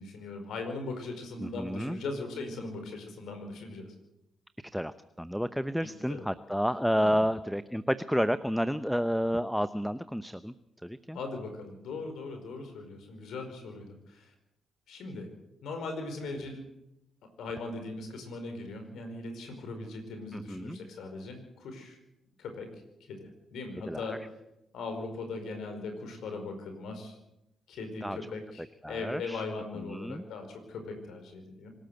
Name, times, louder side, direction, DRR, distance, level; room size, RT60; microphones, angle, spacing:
voice 1, 0.0-3.9 5.8-6.2 6.9-7.2 11.1-14.3 14.9-15.3 15.6-16.6 17.4-22.0 22.4-22.7 23.0-24.2 24.7-27.2 27.7-31.7, left 3 dB, 70° left, 6 dB, 4.9 m, -39 dB
voice 2, 1.4-2.0 4.7-10.5 10.8-11.2 20.3-20.8 23.9-24.2 28.0-28.2 28.8-29.4 29.9-30.2, equal, ahead, 13 dB, 0.8 m, -30 dB
25.0 x 13.0 x 7.9 m, 0.85 s
hypercardioid pair, 40°, 0 cm